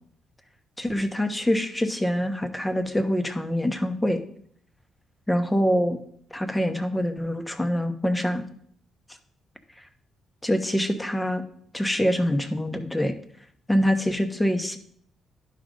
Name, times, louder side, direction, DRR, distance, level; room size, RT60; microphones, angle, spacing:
voice 1, 0.8-4.2 5.3-6.0 6.3-8.4 10.4-11.4 11.7-13.1 13.7-14.8, equal, 10° left, 7 dB, 1.0 m, -25 dB
11.0 x 5.1 x 3.8 m, 0.63 s
cardioid pair, 90°, 0 cm